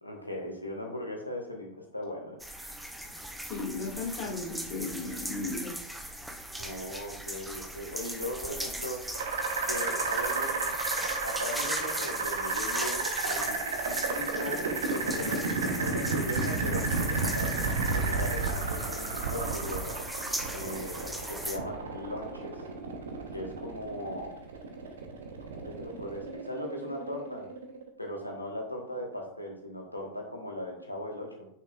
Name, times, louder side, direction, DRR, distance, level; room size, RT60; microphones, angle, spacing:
voice 1, 0.0-2.4 6.6-9.1 9.6-10.7 11.2-20.0 20.5-22.6 23.3-24.3 25.5-27.5 28.0-31.5, left 1 dB, 85° left, 0 dB, 1.4 m, -38 dB
sound 1, 2.4-21.6, right 1 dB, 5° right, 0.6 m, -38 dB
voice 2, 3.5-5.7, left 3 dB, 45° left, -1 dB, 2.1 m, -35 dB
sound 2, 9.1-27.9, right 4 dB, 65° right, 1.0 m, -32 dB
6.6 x 6.1 x 2.5 m, 0.71 s
figure-of-eight pair, 90°, 0 cm